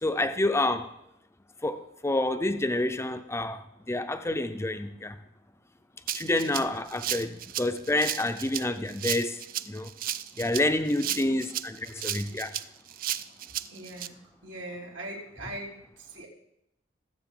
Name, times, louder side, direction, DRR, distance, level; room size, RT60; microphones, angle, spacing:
voice 1, 0.0-0.9 1.6-3.6 3.9-5.2 6.1-9.4 9.7-9.9 10.4-12.5, left 2 dB, 15° left, 9 dB, 0.6 m, -28 dB
Rattle (instrument), 6.1-14.1, right 11 dB, 50° right, 0.4 m, -34 dB
voice 2, 6.2-6.6 7.2-7.5 11.0-11.4 13.7-16.3, right 1 dB, 85° right, -2 dB, 2.9 m, -42 dB
18.5 x 7.7 x 3.8 m, 0.81 s
head